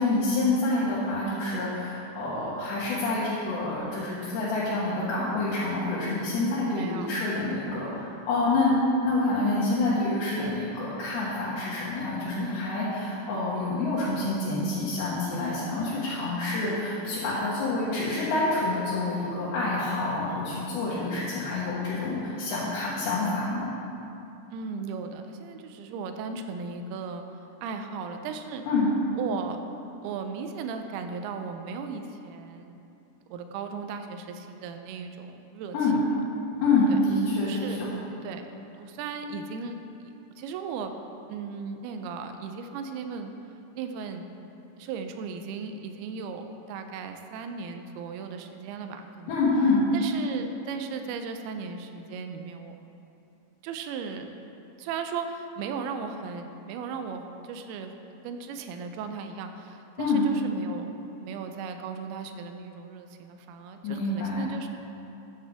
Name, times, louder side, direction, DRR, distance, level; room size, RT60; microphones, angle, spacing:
voice 1, 0.0-8.8 9.0-23.7 28.7-28.9 35.7-36.0 36.6-37.9 49.3-49.8 60.0-60.2 63.8-64.5, left 2 dB, 75° left, -9 dB, 3.6 m, -27 dB
voice 2, 6.7-7.1 7.4-7.6 12.4-12.7 24.5-27.3 27.6-28.6 29.2-29.6 30.0-32.8 33.3-35.8 36.9-37.0 37.4-37.8 38.2-38.4 38.7-40.1 40.4-40.9 41.3-43.3 43.7-44.3 44.8-49.4 49.9-52.8 53.6-54.3 54.8-57.9 58.2-60.9 61.2-64.8, right 5 dB, 85° right, 6 dB, 2.2 m, -36 dB
14.0 x 9.5 x 3.5 m, 2.8 s
omnidirectional pair, 5.2 m